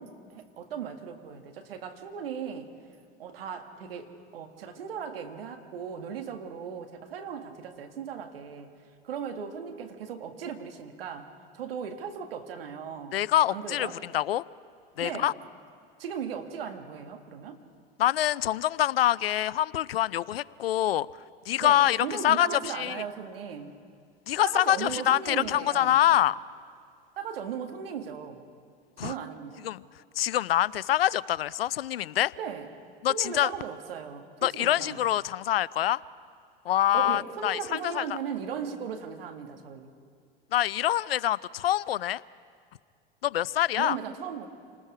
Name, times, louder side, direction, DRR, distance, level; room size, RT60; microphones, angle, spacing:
voice 1, 0.0-2.7 3.2-8.7 9.0-13.2 13.5-14.0 15.0-15.3 16.0-17.6 21.6-23.8 24.4-26.0 27.2-28.4 29.0-29.7 32.4-32.7 33.1-35.0 36.9-40.0 43.8-44.5, right 7 dB, 80° right, 5 dB, 1.8 m, -37 dB
voice 2, 13.1-13.9 14.1-14.4 15.0-15.3 18.0-21.1 21.5-22.0 22.2-23.0 24.3-26.3 29.0-29.1 29.6-29.8 30.2-32.3 33.0-33.5 34.4-36.0 36.7-38.0 40.5-42.2 43.2-44.0, left 12 dB, 85° left, 21 dB, 0.5 m, -25 dB
28.5 x 19.5 x 4.9 m, 2.2 s
hypercardioid pair, 80°, 29 cm